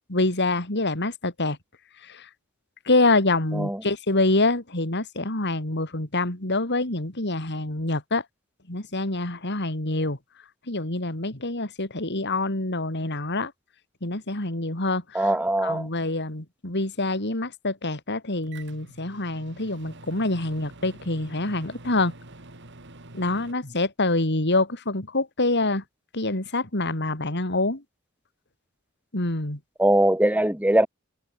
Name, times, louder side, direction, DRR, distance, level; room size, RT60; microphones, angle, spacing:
voice 1, 0.0-1.6 2.0-2.3 2.9-8.2 8.7-10.2 10.7-13.5 14.0-15.3 15.6-22.1 23.1-25.8 26.1-27.8 29.1-29.6, left 2 dB, 55° left, 3.9 m, -26 dB
voice 2, 15.1-15.9 29.8-30.9, right 1 dB, 5° right, 2.0 m, -21 dB
Microwave oven, 18.4-23.5, right 2 dB, 55° right, 4.1 m, -46 dB
head